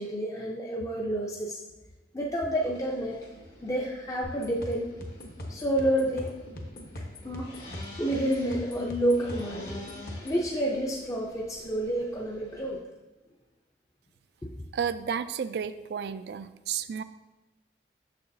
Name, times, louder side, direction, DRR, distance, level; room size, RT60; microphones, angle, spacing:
voice 1, 0.0-1.6 2.1-3.2 3.6-4.9 5.5-6.4 7.2-7.5 8.0-9.8 10.2-12.8 14.4-14.5, right 1 dB, 20° left, -2 dB, 0.5 m, -29 dB
sound 1, 2.6-12.8, left 2 dB, 80° left, 2.3 m, -49 dB
sound 2, 4.2-10.4, left 1 dB, 55° left, 0.9 m, -41 dB
voice 2, 14.7-17.0, right 7 dB, 70° right, 13 dB, 0.3 m, -32 dB
6.7 x 6.6 x 2.7 m, 1.1 s
head